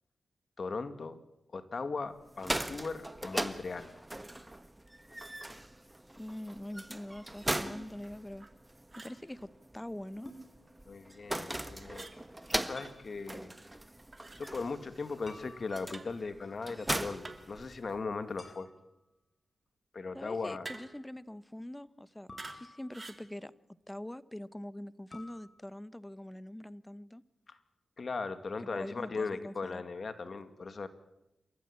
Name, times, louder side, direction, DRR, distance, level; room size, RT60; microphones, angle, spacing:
voice 1, 0.6-1.2 1.5-3.9 10.9-12.1 12.5-13.5 14.4-18.7 19.9-20.7 27.5-27.6 28.0-30.9, left 4 dB, 55° left, 11 dB, 2.1 m, -38 dB
sound 1, 2.2-18.1, right 1 dB, 15° right, 1.5 m, -40 dB
voice 2, 6.2-8.5 8.9-10.3 20.1-23.5 23.9-27.2 28.7-29.8, left 1 dB, 15° left, 17 dB, 1.0 m, -44 dB
sound 2, 7.7-7.9 10.3-10.5 12.8-13.0 15.3-16.2 18.4-19.0 22.3-23.2 25.1-25.5, left 1 dB, 35° left, 6.8 m, -51 dB
sound 3, 8.4-8.6 8.9-9.2 11.9-12.2 14.1-14.4 15.9-16.2 17.2-17.6 20.6-21.1 22.4-22.6 22.9-23.3, right 3 dB, 40° right, 2.8 m, -47 dB
28.0 x 14.0 x 8.7 m, 0.93 s
supercardioid pair, 45°, 0 cm